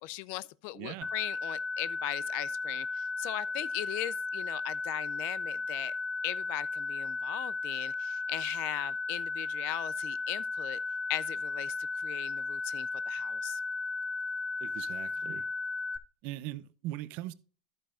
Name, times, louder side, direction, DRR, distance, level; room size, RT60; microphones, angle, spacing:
voice 1, 0.0-5.9 6.2-10.8 11.1-11.8 12.0-13.6, left 18 dB, 55° left, 0.4 m, -39 dB
voice 2, 0.7-1.1 14.6-15.5 16.2-17.3, right 15 dB, 55° right, 0.6 m, -40 dB
sound 1, 1.0-16.0, left 3 dB, 10° left, 0.7 m, -35 dB
11.5 x 8.8 x 2.5 m
hypercardioid pair, 115°, 4 cm